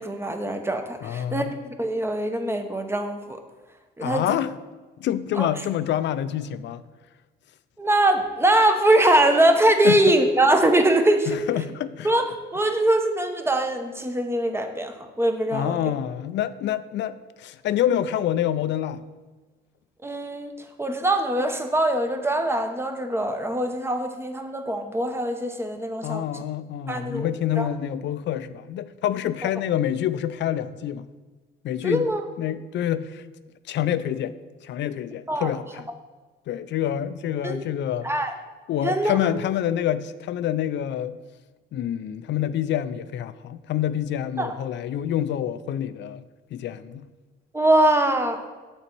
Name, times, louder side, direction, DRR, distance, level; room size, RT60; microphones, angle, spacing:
voice 1, 0.0-1.5 1.8-3.4 4.0-4.4 5.4-5.5 7.8-11.4 12.0-12.2 12.5-15.9 20.0-20.5 20.8-26.2 26.9-27.3 27.6-27.7 31.8-32.2 35.3-35.5 37.4-37.6 38.0-38.3 38.8-39.1 44.4-44.6 47.5-48.4, right 1 dB, 10° right, 6 dB, 0.7 m, -22 dB
voice 2, 1.0-1.5 4.0-4.5 5.0-6.8 9.8-10.2 11.3-12.1 15.5-19.0 26.0-31.1 31.6-32.1 32.4-33.2 33.7-34.3 34.6-35.9 36.5-38.1 38.7-41.2 41.7-46.2 46.5-47.1, left 11 dB, 65° left, 14 dB, 0.4 m, -27 dB
7.0 x 4.2 x 4.5 m, 1.3 s
cardioid pair, 90°, 20 cm